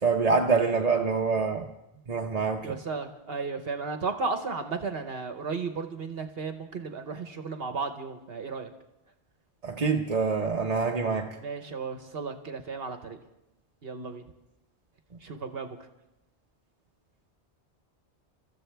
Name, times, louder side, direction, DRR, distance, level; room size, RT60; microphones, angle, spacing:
voice 1, 0.0-1.7 2.1-2.8 9.6-11.3, right 4 dB, 40° right, 0.9 m, -26 dB
voice 2, 2.6-8.7 11.3-13.2 13.8-14.2 15.2-15.8, right 4 dB, 60° right, 1.2 m, -34 dB
28.0 x 14.0 x 3.4 m
omnidirectional pair, 1.1 m